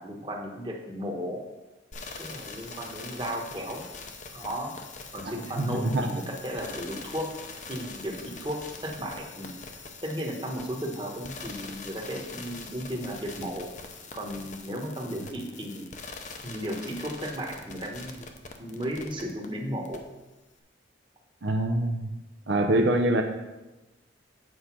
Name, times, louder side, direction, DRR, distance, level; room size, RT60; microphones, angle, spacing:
voice 1, 0.0-1.4 2.2-3.8 4.3-4.7 5.1-7.3 7.7-9.5 10.0-13.7 14.1-15.9 16.4-18.3 18.6-20.0, equal, 25° right, 0 dB, 1.2 m, -35 dB
sound 1, 1.9-19.5 19.8-20.0, left 4 dB, 40° left, 0.7 m, -43 dB
voice 2, 5.3-6.2 21.4-22.1 22.5-23.2, right 1 dB, 70° right, 3 dB, 0.7 m, -25 dB
7.9 x 5.0 x 5.9 m, 1.0 s
head